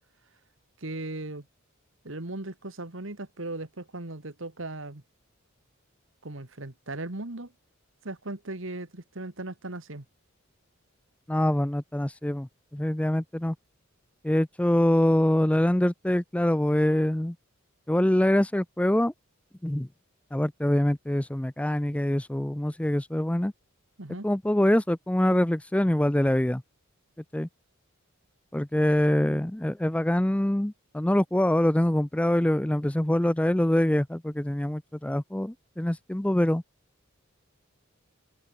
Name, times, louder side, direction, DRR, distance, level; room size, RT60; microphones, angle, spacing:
voice 1, 0.8-1.4 2.0-5.0 6.2-7.5 8.0-10.1 24.0-24.3, right 2 dB, 65° right, 2.0 m, -37 dB
voice 2, 11.3-13.6 14.2-17.4 17.9-19.1 19.6-19.9 20.3-23.5 24.2-26.6 27.3-27.5 28.5-36.6, left 1 dB, 5° left, 0.4 m, -24 dB
head